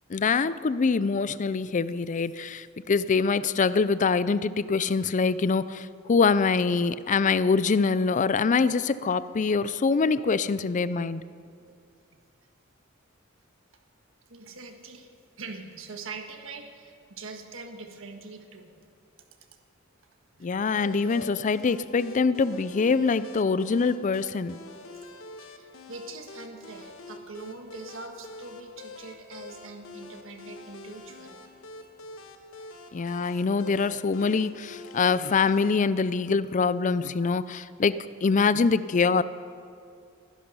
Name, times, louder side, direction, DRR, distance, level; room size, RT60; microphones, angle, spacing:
voice 1, 0.1-11.2 20.4-24.6 32.9-39.2, left 4 dB, 40° left, 16 dB, 0.4 m, -24 dB
voice 2, 14.3-15.1 15.4-18.8 20.4-20.5 25.4-31.5 38.4-38.5, right 3 dB, 70° right, 4 dB, 1.5 m, -43 dB
sound 1, 20.7-35.7, left 3 dB, 80° left, 1.3 m, -46 dB
20.5 x 11.5 x 5.5 m, 2.4 s
head